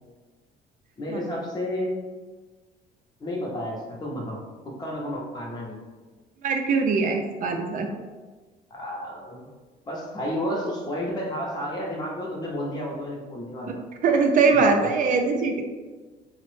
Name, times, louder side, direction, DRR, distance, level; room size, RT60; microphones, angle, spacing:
voice 1, 1.0-1.9 3.2-4.4 4.8-5.8 8.7-9.5 9.9-13.8 14.5-14.9, equal, 25° left, -3 dB, 0.7 m, -31 dB
voice 2, 6.4-7.9 13.7-13.8 14.0-15.6, right 4 dB, 50° right, 4 dB, 0.4 m, -22 dB
3.0 x 2.1 x 3.1 m, 1.3 s
cardioid pair, 110°, 17 cm